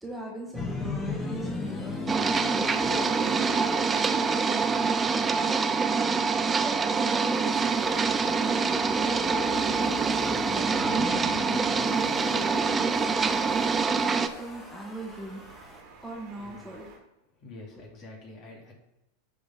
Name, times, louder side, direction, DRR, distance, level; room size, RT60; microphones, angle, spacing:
voice 1, 0.0-2.1 2.5-4.9 5.3-5.9 6.4-8.6 8.9-15.4 16.0-16.9 17.8-17.9, right 1 dB, 5° right, -2 dB, 1.7 m, -40 dB
sound 1, 0.5-15.8, left 3 dB, 15° left, 1.7 m, -38 dB
sound 2, 2.1-14.3, right 5 dB, 20° right, 0.5 m, -25 dB
sound 3, 7.5-17.0, right 4 dB, 50° right, 2.0 m, -48 dB
voice 2, 17.4-18.7, left 2 dB, 40° left, -1 dB, 2.5 m, -46 dB
11.0 x 3.9 x 4.1 m, 0.89 s
hypercardioid pair, 95°, 0 cm